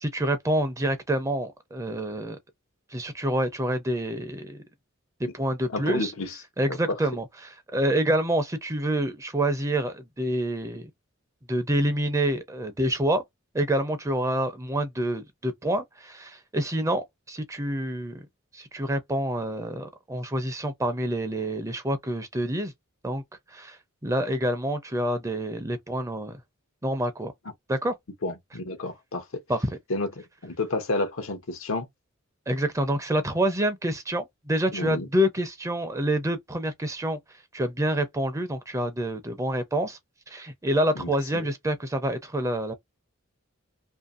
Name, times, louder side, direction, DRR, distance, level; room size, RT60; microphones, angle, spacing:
voice 1, 0.0-2.4 2.9-4.6 5.2-6.1 6.6-10.9 11.5-13.2 13.5-18.3 18.5-22.7 23.0-23.2 23.5-23.8 24.0-26.4 26.8-27.3 27.7-27.9 29.5-29.7 32.5-37.2 37.5-40.0 40.3-42.7, right 1 dB, 15° right, 0.5 m, -27 dB
voice 2, 5.7-6.4 6.7-7.0 28.2-29.4 29.9-31.9 34.7-35.1 41.0-41.5, left 2 dB, 80° left, 0.8 m, -31 dB
2.6 x 2.6 x 2.4 m
head